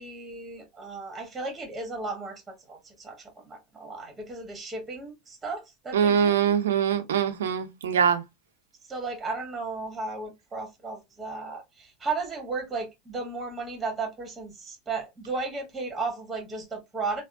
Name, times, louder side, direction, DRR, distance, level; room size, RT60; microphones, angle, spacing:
voice 1, 0.0-6.4 8.9-17.2, right 3 dB, 20° right, 1.3 m, -35 dB
voice 2, 5.9-8.2, right 7 dB, 80° right, 0.5 m, -23 dB
3.5 x 2.0 x 2.4 m
hypercardioid pair, 95°, 0 cm